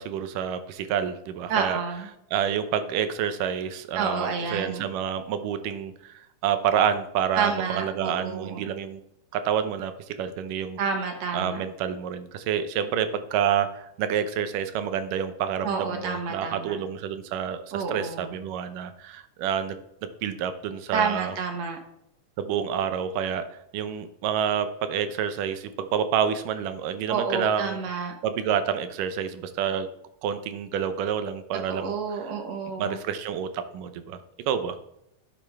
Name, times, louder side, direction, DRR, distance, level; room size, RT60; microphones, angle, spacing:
voice 1, 0.0-1.8 2.3-9.0 9.3-10.8 11.3-21.4 22.4-27.8 28.2-29.9 30.2-32.0 32.8-34.2 34.5-34.8, right 8 dB, 85° right, 10 dB, 2.5 m, -28 dB
voice 2, 1.5-2.1 4.0-4.9 7.4-8.7 10.8-11.6 15.6-16.8 17.7-18.3 20.9-21.8 27.1-28.2 31.7-33.0, right 5 dB, 60° right, 4 dB, 2.1 m, -29 dB
11.5 x 8.7 x 3.5 m, 0.78 s
omnidirectional pair, 3.7 m